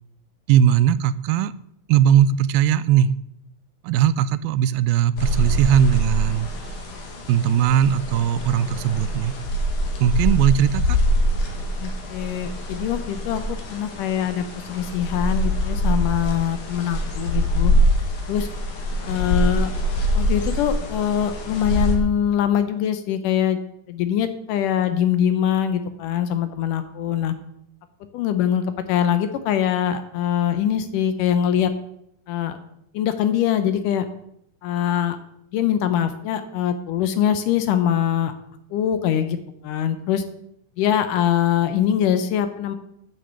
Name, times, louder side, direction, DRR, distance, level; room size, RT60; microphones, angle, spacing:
voice 1, 0.5-1.5 1.9-3.1 3.8-6.5 7.3-9.3 10.0-11.0, right 10 dB, 85° right, 16 dB, 2.4 m, -19 dB
sound 1, 5.2-22.0, equal, 60° left, 3.1 m, -24 dB
voice 2, 11.8-17.7 18.3-18.5 19.1-19.7 20.2-23.6 23.9-27.3 28.1-28.6 28.9-31.7 32.3-32.6 32.9-34.1 34.6-35.2 35.5-38.3 38.7-39.4 39.6-40.2 40.8-42.8, left 9 dB, 75° left, 10 dB, 2.2 m, -23 dB
10.5 x 6.3 x 8.1 m, 0.75 s
omnidirectional pair, 4.1 m